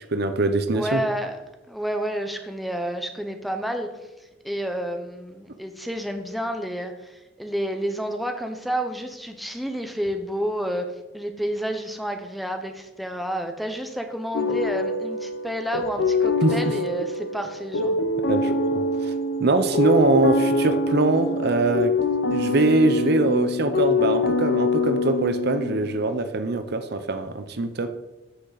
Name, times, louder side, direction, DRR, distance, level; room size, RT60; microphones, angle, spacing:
voice 1, 0.1-1.0 16.4-16.5 18.3-19.1 19.4-21.9 22.3-27.9, right 2 dB, 60° right, 9 dB, 0.8 m, -22 dB
voice 2, 0.7-1.4 1.7-3.9 4.4-17.9, equal, ahead, 5 dB, 0.9 m, -30 dB
sound 1, 14.3-26.1, left 2 dB, 85° left, 0.8 m, -24 dB
13.0 x 6.6 x 4.1 m, 1.0 s
head